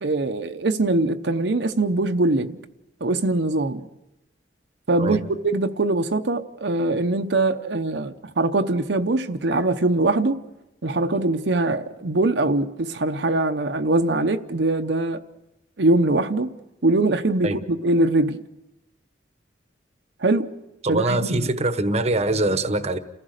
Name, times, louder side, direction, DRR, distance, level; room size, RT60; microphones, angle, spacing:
voice 1, 0.0-2.6 3.0-3.9 4.9-10.4 10.8-15.2 15.8-16.5 16.8-18.4 20.2-20.5 20.9-21.5, right 2 dB, 75° right, 0.9 m, -22 dB
voice 2, 20.8-23.0, right 2 dB, 35° right, 1.0 m, -23 dB
29.5 x 15.0 x 6.6 m
head